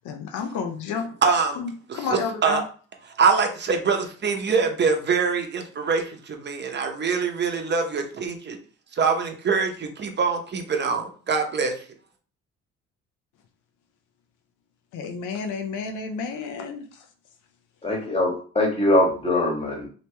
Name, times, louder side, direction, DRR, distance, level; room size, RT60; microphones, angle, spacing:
voice 1, 0.0-1.1 1.6-2.6 14.9-16.8, left 5 dB, 85° left, 4 dB, 0.6 m, -30 dB
voice 2, 1.2-1.6 1.9-2.6 3.2-8.6 9.0-11.8, right 5 dB, 35° right, 4 dB, 0.8 m, -24 dB
voice 3, 17.8-19.9, left 1 dB, 20° left, -2 dB, 1.6 m, -22 dB
2.9 x 2.8 x 3.3 m, 0.40 s
cardioid pair, 90°, 30 cm